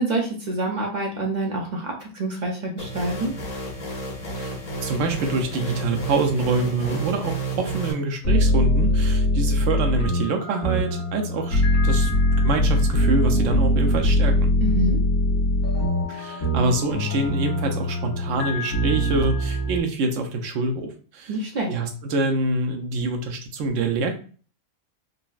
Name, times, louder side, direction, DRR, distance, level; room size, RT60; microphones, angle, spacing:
voice 1, 0.0-3.3 14.6-15.0 21.3-21.7, right 2 dB, 50° right, 0 dB, 0.6 m, -26 dB
sound 1, 2.8-7.9, right 3 dB, 40° left, 0.6 m, -30 dB
voice 2, 4.8-12.1 12.4-14.3 16.1-21.3 21.7-24.2, right 3 dB, 75° right, 4 dB, 0.9 m, -26 dB
sound 2, 8.2-19.8, left 1 dB, 85° left, 1.3 m, -22 dB
3.9 x 2.0 x 2.4 m, 0.41 s
omnidirectional pair, 1.3 m